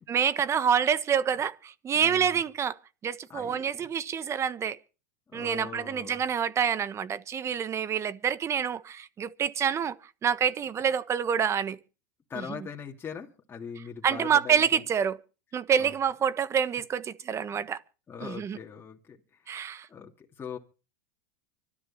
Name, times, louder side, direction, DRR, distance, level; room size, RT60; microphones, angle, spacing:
voice 1, 0.1-2.8 3.0-4.8 5.3-9.9 10.2-11.8 12.4-12.6 14.0-15.2 15.5-17.8 18.2-18.6 19.5-19.9, right 7 dB, 30° right, 1.3 m, -27 dB
voice 2, 1.9-2.4 3.3-3.9 5.3-6.2 12.3-14.8 15.8-15.9 17.5-17.7 18.1-19.4 19.9-20.6, left 7 dB, 25° left, 2.7 m, -41 dB
25.0 x 10.0 x 4.3 m
hypercardioid pair, 110°, 10 cm